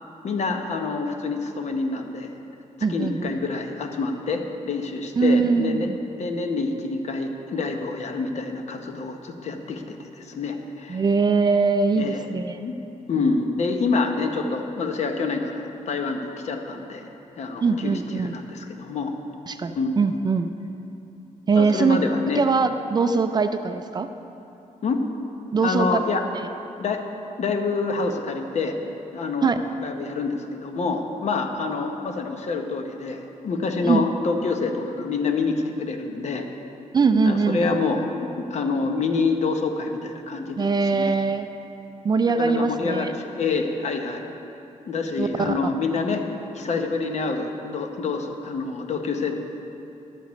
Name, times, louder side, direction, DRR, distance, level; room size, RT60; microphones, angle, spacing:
voice 1, 0.2-2.3 2.9-5.9 6.2-11.0 12.0-12.3 12.6-12.8 13.1-17.1 17.4-19.1 19.7-20.1 21.6-22.4 24.8-25.0 25.6-26.2 26.8-27.0 27.4-28.8 29.1-36.5 37.2-41.1 42.4-44.2 44.9-46.2 46.5-49.4, left 4 dB, 55° left, 4 dB, 0.9 m, -27 dB
voice 2, 2.8-3.3 5.2-6.0 10.9-12.6 17.6-18.3 19.5-20.5 21.5-22.0 22.4-24.1 25.5-25.9 26.3-26.5 29.4-29.5 33.8-34.0 36.9-37.8 40.6-41.5 42.0-43.1 45.2-45.7, right 4 dB, 30° right, 8 dB, 0.4 m, -22 dB
13.5 x 12.0 x 3.1 m, 2.9 s
wide cardioid pair, 130°, 14 cm